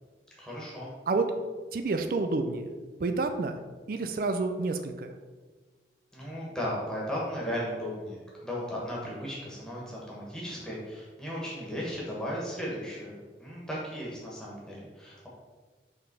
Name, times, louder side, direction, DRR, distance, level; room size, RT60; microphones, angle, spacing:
voice 1, 0.4-0.9 6.1-15.3, equal, 5° left, -6 dB, 1.5 m, -36 dB
voice 2, 1.7-2.7 3.0-3.6 3.9-5.1, right 3 dB, 50° right, 7 dB, 0.4 m, -29 dB
5.7 x 3.5 x 5.2 m, 1.4 s
head